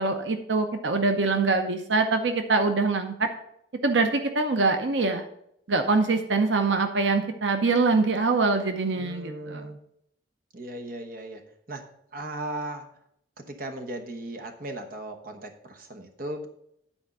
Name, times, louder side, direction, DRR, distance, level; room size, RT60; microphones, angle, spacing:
voice 1, 0.0-3.3 3.8-5.2 5.7-9.7, right 3 dB, 90° right, 7 dB, 0.8 m, -24 dB
voice 2, 9.0-9.8 10.5-11.4 11.7-11.8 12.1-12.9 13.5-16.5, right 1 dB, 50° right, 4 dB, 1.1 m, -37 dB
9.9 x 4.5 x 6.6 m, 0.75 s
head